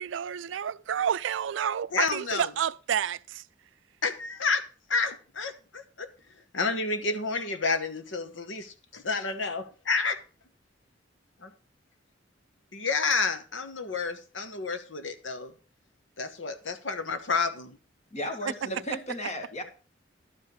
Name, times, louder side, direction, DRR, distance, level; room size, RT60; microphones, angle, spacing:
voice 1, 0.0-3.4 18.2-18.3, right 8 dB, 75° right, 0.4 m, -30 dB
voice 2, 1.9-2.5 4.0-4.6 4.9-6.1 6.5-10.2 11.4-11.5 12.7-15.5 16.2-17.8, left 4 dB, 80° left, 1.2 m, -30 dB
voice 3, 18.1-19.6, equal, 40° left, 1.9 m, -34 dB
11.5 x 4.8 x 6.7 m
head